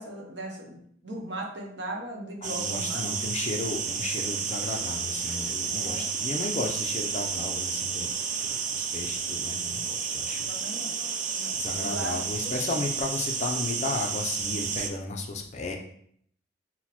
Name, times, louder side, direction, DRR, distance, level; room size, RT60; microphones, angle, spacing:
voice 1, 0.0-3.0 5.8-6.1 10.5-10.9 11.4-12.8, right 1 dB, 65° right, 1 dB, 0.8 m, -38 dB
voice 2, 2.4-10.5 11.5-15.8, left 3 dB, 35° left, 2 dB, 0.5 m, -34 dB
sound 1, 2.4-14.9, right 6 dB, 40° right, 0.4 m, -31 dB
5.9 x 2.1 x 2.9 m, 0.64 s
head